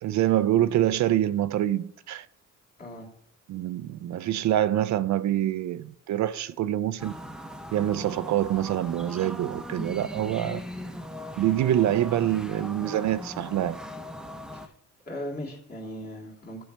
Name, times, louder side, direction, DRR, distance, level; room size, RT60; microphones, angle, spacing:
voice 1, 0.0-2.3 3.5-7.1 7.7-10.6 11.4-13.8, right 12 dB, 70° right, 0.5 m, -25 dB
sound 1, 7.0-14.7, equal, ahead, 0.7 m, -39 dB
voice 2, 15.1-16.6, equal, 30° left, 2.5 m, -38 dB
12.0 x 5.4 x 3.3 m
cardioid pair, 90°, 30 cm